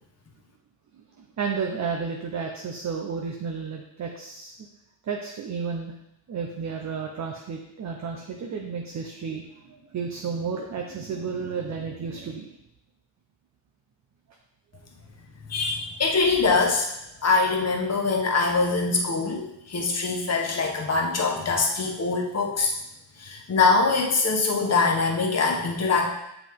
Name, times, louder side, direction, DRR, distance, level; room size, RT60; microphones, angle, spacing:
voice 1, 0.9-4.7 5.0-5.9 6.3-12.5, right 5 dB, 35° right, 2 dB, 0.7 m, -32 dB
voice 2, 15.5-16.9 17.2-22.7 23.2-26.1, left 4 dB, 35° left, 1 dB, 1.1 m, -23 dB
7.6 x 4.7 x 3.6 m, 0.83 s
cardioid pair, 140°, 47 cm